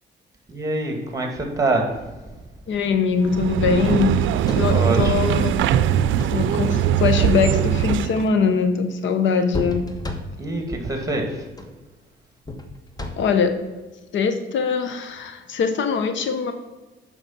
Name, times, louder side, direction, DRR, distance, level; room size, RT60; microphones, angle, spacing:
voice 1, 0.5-1.9 4.6-5.3 10.4-11.4, right 2 dB, 15° right, 3 dB, 2.4 m, -25 dB
voice 2, 2.7-4.2 4.5-5.6 6.3-9.9 13.2-13.5 14.1-16.5, left 5 dB, 70° left, 9 dB, 1.0 m, -22 dB
sound 1, 3.2-8.3, right 10 dB, 75° right, 0.5 m, -21 dB
sound 2, 4.2-5.0 5.9-6.5 7.3-8.1 9.5-10.6 11.5-11.8 12.4-13.5 15.1-15.3, left 1 dB, 20° left, 1.2 m, -33 dB
9.2 x 6.0 x 5.8 m, 1.2 s
cardioid pair, 90°, 20 cm